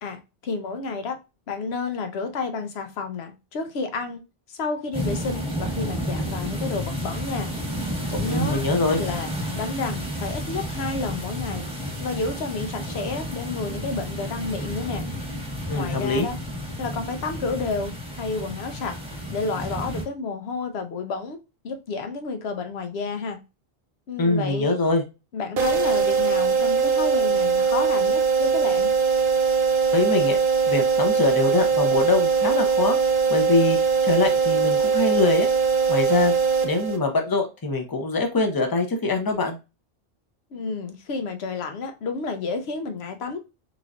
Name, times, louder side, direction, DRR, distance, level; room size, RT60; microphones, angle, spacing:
voice 1, 0.0-1.2 1.5-4.2 4.5-7.5 8.1-8.6 9.0-15.1 15.7-16.4 16.8-19.0 19.3-21.4 21.6-23.4 24.1-24.8 25.3-28.9 40.5-43.4, left 4 dB, 75° left, 1.0 m, -30 dB
sound 1, 4.9-20.0, equal, 5° right, 1.2 m, -31 dB
voice 2, 8.3-9.0 15.7-16.3 24.2-25.0 29.9-30.4 30.7-33.0 33.3-33.8 34.0-35.5 35.9-36.3 36.6-39.6, left 3 dB, 25° left, 0.6 m, -23 dB
sound 2, 25.6-37.3, right 5 dB, 60° right, 0.8 m, -21 dB
3.9 x 3.2 x 2.4 m
omnidirectional pair, 1.1 m